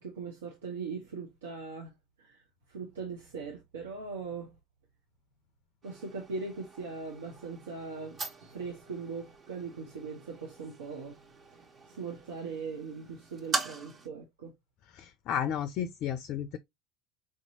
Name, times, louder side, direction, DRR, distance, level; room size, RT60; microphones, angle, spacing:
voice 1, 0.0-2.4 2.7-4.6 5.8-11.2 11.8-14.5, right 4 dB, 75° right, 0.9 m, -40 dB
sound 1, 5.8-14.1, right 3 dB, 35° right, 1.2 m, -42 dB
voice 2, 14.9-16.6, left 9 dB, 50° left, 0.4 m, -33 dB
5.0 x 2.8 x 2.7 m
figure-of-eight pair, 70°, 0 cm